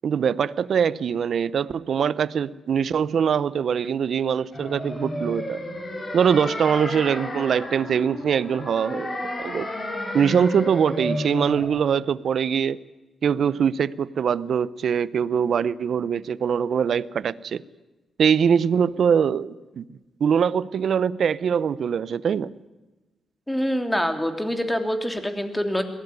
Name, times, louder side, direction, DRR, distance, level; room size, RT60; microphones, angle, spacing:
voice 1, 0.0-5.6 6.1-9.7 10.1-12.8 13.2-17.6 18.2-19.8 20.2-22.5, right 7 dB, 70° right, 19 dB, 0.7 m, -23 dB
sound 1, 4.5-11.6, left 1 dB, 35° left, 7.3 m, -32 dB
voice 2, 23.5-25.8, equal, 10° left, 6 dB, 3.3 m, -25 dB
22.0 x 18.0 x 9.7 m, 1.1 s
cardioid pair, 75°, 0 cm